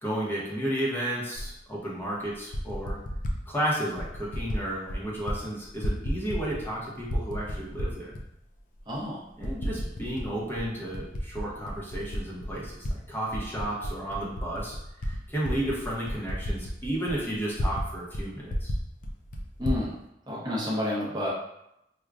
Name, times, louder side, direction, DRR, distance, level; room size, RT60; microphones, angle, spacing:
voice 1, 0.0-3.0 3.5-8.1 9.4-14.8 15.0-18.7, right 1 dB, 10° left, -6 dB, 0.8 m, -32 dB
Typing, 1.3-1.5 2.3-3.4 4.0-4.6 4.9-5.4 5.6-6.7 7.0-8.2 8.8-8.9 9.4-10.3 10.6-12.9 13.3-17.9 18.1-18.2 18.5-19.8, equal, 45° left, 0.5 m, -32 dB
voice 2, 8.9-9.2 19.6-19.9 20.3-21.3, left 1 dB, 25° right, -7 dB, 0.7 m, -29 dB
4.6 x 2.2 x 2.4 m, 0.83 s
head